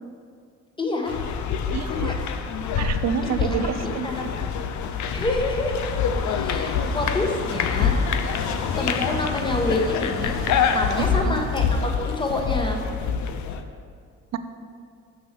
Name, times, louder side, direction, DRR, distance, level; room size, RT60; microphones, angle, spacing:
voice 1, 0.8-1.2 1.9-2.1 3.2-4.3 5.1-5.8 6.1-8.0 8.4-10.4 10.7-12.8, left 2 dB, 15° left, 1 dB, 1.3 m, -28 dB
sound 1, 1.1-13.6, left 6 dB, 70° left, 0.6 m, -26 dB
voice 2, 1.7-2.1 2.8-4.4 11.0-11.4 14.3-14.4, right 8 dB, 60° right, 10 dB, 0.6 m, -28 dB
sound 2, 4.9-11.1, left 1 dB, 45° left, 2.3 m, -39 dB
6.3 x 6.1 x 6.8 m, 2.2 s
cardioid pair, 90°, 30 cm